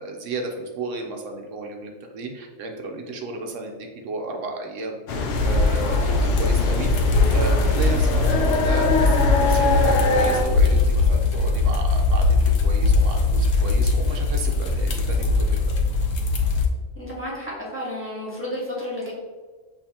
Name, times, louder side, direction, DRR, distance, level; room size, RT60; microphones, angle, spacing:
voice 1, 0.0-5.0 5.4-6.9 7.3-15.6, right 2 dB, 75° right, 3 dB, 1.0 m, -33 dB
sound 1, 5.1-10.4, left 3 dB, 60° left, 0.8 m, -23 dB
sound 2, 5.3-16.7, left 3 dB, 85° left, 1.1 m, -21 dB
voice 2, 16.9-19.1, left 1 dB, 10° left, -6 dB, 1.2 m, -31 dB
7.1 x 2.6 x 2.8 m, 1.4 s
omnidirectional pair, 1.3 m